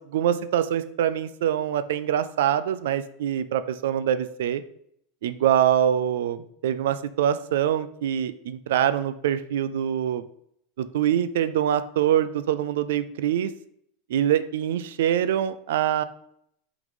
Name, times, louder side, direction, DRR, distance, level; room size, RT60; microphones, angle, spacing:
voice 1, 0.0-4.6 5.2-10.2 10.8-13.5 14.1-16.0, right 10 dB, 80° right, 14 dB, 0.5 m, -24 dB
6.0 x 4.0 x 5.2 m, 0.70 s
supercardioid pair, 140°, 0 cm